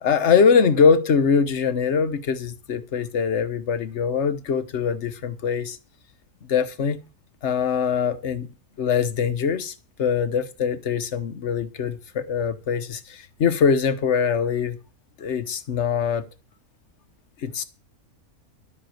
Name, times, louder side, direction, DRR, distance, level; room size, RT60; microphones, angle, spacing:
voice 1, 0.0-5.8 6.5-7.0 7.4-8.5 8.8-14.8 15.2-16.3 17.4-17.6, left 6 dB, 50° left, 1.3 m, -22 dB
13.5 x 6.1 x 7.8 m
omnidirectional pair, 1.5 m